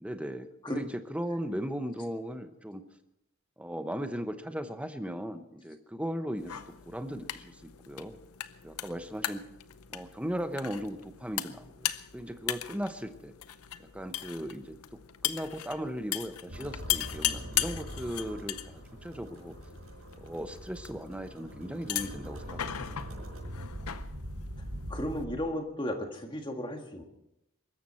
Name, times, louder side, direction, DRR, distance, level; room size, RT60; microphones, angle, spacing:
voice 1, 0.0-2.8 3.6-8.2 8.6-9.4 9.9-13.3 13.8-19.5 20.2-23.3, equal, 5° right, 9 dB, 0.9 m, -37 dB
sound 1, 6.4-25.2, left 12 dB, 85° left, 0.7 m, -38 dB
sound 2, 16.5-25.4, equal, 85° right, 5.2 m, -43 dB
voice 2, 24.9-27.0, equal, 20° left, 4 dB, 1.7 m, -34 dB
23.0 x 13.5 x 4.4 m, 0.83 s
head